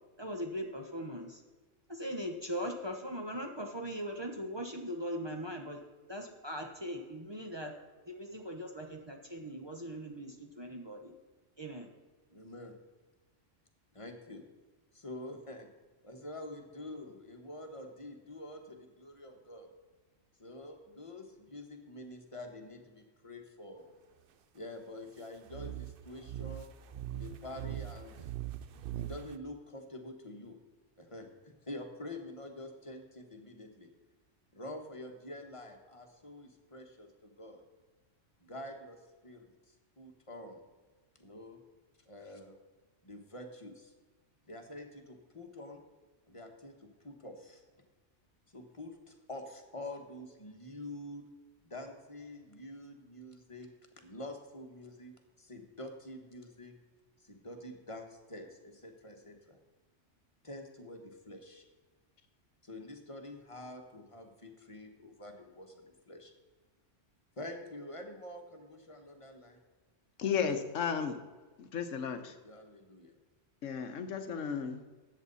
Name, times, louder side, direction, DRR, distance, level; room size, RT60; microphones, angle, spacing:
voice 1, 0.2-1.4 1.9-5.8 6.1-7.7 8.1-11.1 11.6-11.9, equal, 25° right, 1.0 m, -40 dB
voice 2, 12.3-12.8 13.9-14.4 14.9-15.7 16.0-19.7 20.4-23.9 24.5-26.7 27.1-28.3 28.9-30.6 31.0-33.9 34.5-37.6 38.4-39.5 40.0-40.6 41.2-41.6 42.1-42.6 43.0-43.9 44.5-45.8 46.3-47.6 48.5-51.2 51.6-53.7 54.0-56.8 57.2-59.6 60.4-61.6 62.6-66.3 67.4-69.6 72.4-73.1, left 1 dB, 25° left, 1.4 m, -47 dB
sound 1, 25.5-29.4, right 12 dB, 60° right, 0.7 m, -41 dB
voice 3, 70.2-71.2 71.6-72.4 73.6-74.8, left 7 dB, 85° left, 1.3 m, -34 dB
13.5 x 8.7 x 4.1 m
omnidirectional pair, 1.3 m